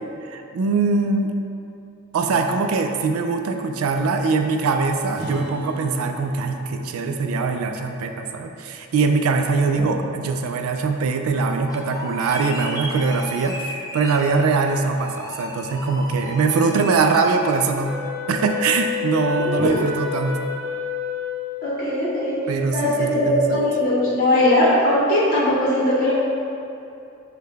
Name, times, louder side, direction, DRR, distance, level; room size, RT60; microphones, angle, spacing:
voice 1, 0.3-1.4 2.1-18.0 18.3-20.4 22.5-23.6, right 4 dB, 80° right, 5 dB, 0.3 m, -22 dB
Acoustic guitar, 5.1-9.8, right 1 dB, 50° right, 1.0 m, -39 dB
sound 1, 11.4-17.7, left 1 dB, 15° left, 0.3 m, -35 dB
Wind instrument woodwind instrument, 17.8-22.1, left 7 dB, 15° right, 0.9 m, -29 dB
voice 2, 21.6-26.1, left 1 dB, 40° left, -7 dB, 0.8 m, -20 dB
5.5 x 2.1 x 3.4 m, 2.7 s
head